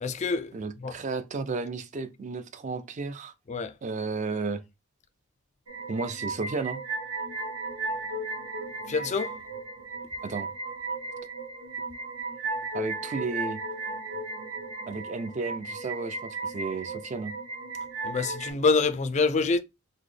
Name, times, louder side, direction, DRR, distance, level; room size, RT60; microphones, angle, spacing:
voice 1, 0.0-1.0 3.5-3.7 8.9-9.3 18.0-19.6, left 4 dB, 35° left, 0.4 m, -26 dB
voice 2, 0.5-3.3 3.8-4.6 5.9-6.8 10.2-10.5 12.7-13.6 14.9-17.3, right 4 dB, 35° right, 0.4 m, -33 dB
sound 1, 5.7-18.5, right 3 dB, 70° right, 0.9 m, -35 dB
3.9 x 2.1 x 3.2 m
head